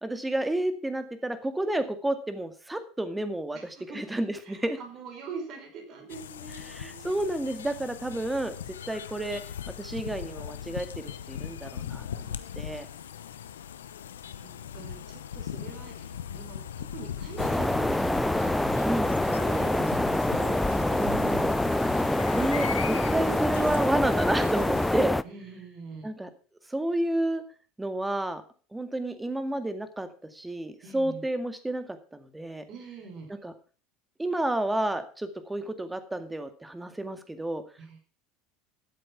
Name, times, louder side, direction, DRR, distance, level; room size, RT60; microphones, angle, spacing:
voice 1, 0.0-4.8 6.7-8.5 8.9-9.4 9.8-12.9 18.8-19.1 21.0-21.5 22.3-25.2 26.0-26.3 26.7-27.4 27.8-28.4 28.7-31.8 32.1-32.6 33.4-33.5 34.2-37.6, right 1 dB, 10° right, 9 dB, 2.1 m, -30 dB
voice 2, 3.5-4.0 4.4-7.1 14.4-21.5 25.2-26.1 30.8-31.2 32.7-33.3 37.8-38.0, right 4 dB, 50° right, 4 dB, 5.0 m, -43 dB
sound 1, 6.1-25.1, left 9 dB, 85° left, 0.9 m, -40 dB
sound 2, 17.4-25.2, left 1 dB, 5° left, 0.6 m, -26 dB
13.0 x 7.8 x 5.9 m, 0.38 s
hypercardioid pair, 80°, 0 cm